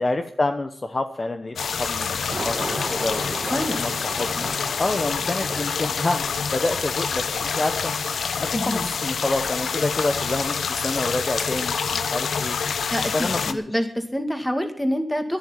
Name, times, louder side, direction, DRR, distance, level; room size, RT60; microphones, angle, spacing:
voice 1, 0.0-3.4 3.7-4.5 4.8-7.3 7.6-7.9 8.4-12.6 13.1-13.8, left 2 dB, 35° left, 7 dB, 0.9 m, -28 dB
Thunder, 1.5-12.8, right 2 dB, 35° right, 2.0 m, -39 dB
sound 1, 1.6-13.5, left 6 dB, 85° left, 0.9 m, -27 dB
voice 2, 3.5-3.8 8.5-8.9 12.9-15.4, equal, 10° left, 7 dB, 2.2 m, -26 dB
11.5 x 11.0 x 9.0 m, 0.63 s
wide cardioid pair, 80°, 0 cm